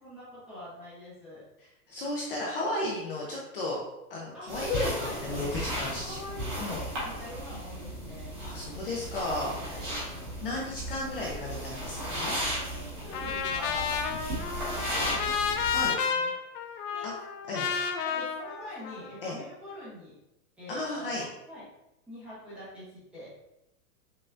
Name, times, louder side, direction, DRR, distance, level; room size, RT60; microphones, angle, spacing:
voice 1, 0.0-1.4 4.3-4.5 4.9-5.6 6.0-8.3 9.2-9.9 12.5-14.3 14.6-15.2 16.1-16.3 16.9-17.1 18.0-20.1 20.6-21.6 22.1-23.3, left 1 dB, ahead, -13 dB, 0.7 m, -44 dB
voice 2, 1.9-3.8 4.1-6.2 6.6-6.8 8.3-9.5 10.4-12.4 15.7-16.0 17.0-17.1 17.5-17.7 19.2-19.4 20.7-21.3, left 2 dB, 40° left, -3 dB, 0.5 m, -34 dB
sound 1, 4.5-15.9, equal, 25° right, 1.1 m, -36 dB
Trumpet, 13.1-19.3, left 6 dB, 85° left, 0.7 m, -31 dB
5.4 x 2.3 x 2.5 m, 0.89 s
supercardioid pair, 175°, 46 cm